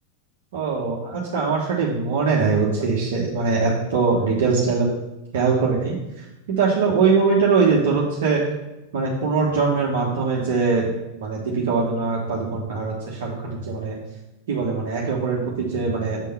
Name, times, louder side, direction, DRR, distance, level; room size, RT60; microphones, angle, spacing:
voice 1, 0.5-4.9 5.3-8.4 8.9-10.9 11.2-14.0 14.5-16.2, right 4 dB, 55° right, -3 dB, 1.1 m, -22 dB
7.5 x 3.7 x 5.5 m, 0.99 s
figure-of-eight pair, 90°, 0 cm